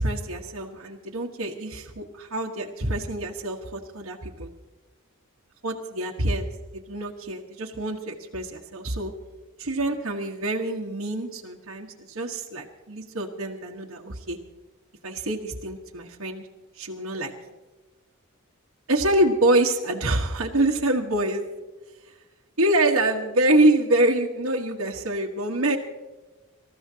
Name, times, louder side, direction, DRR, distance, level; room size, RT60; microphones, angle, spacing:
voice 1, 0.0-4.5 5.6-9.1 9.6-14.4 15.0-16.5 16.8-17.3 18.9-21.4 22.6-25.8, right 1 dB, 80° right, -2 dB, 1.4 m, -25 dB
25.5 x 14.0 x 2.9 m, 1.1 s
head